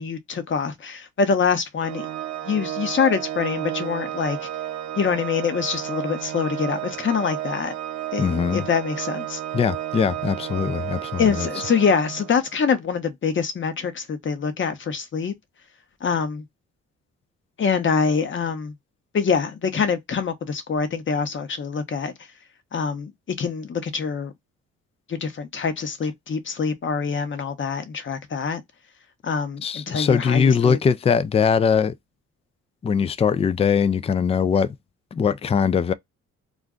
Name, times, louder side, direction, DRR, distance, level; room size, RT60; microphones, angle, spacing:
voice 1, 0.0-2.0 2.5-4.4 4.9-7.7 8.1-9.4 11.2-15.3 16.0-16.4 17.6-18.7 19.1-22.1 22.7-23.1 23.4-24.3 25.1-28.6 29.2-30.8, left 6 dB, 40° left, 0.9 m, -25 dB
Organ, 1.8-12.6, right 12 dB, 65° right, 0.9 m, -32 dB
voice 2, 8.2-8.7 9.5-11.5 29.6-31.9 32.8-34.7 35.1-35.9, left 6 dB, 20° left, 0.3 m, -21 dB
2.4 x 2.2 x 3.6 m
cardioid pair, 90°, 30 cm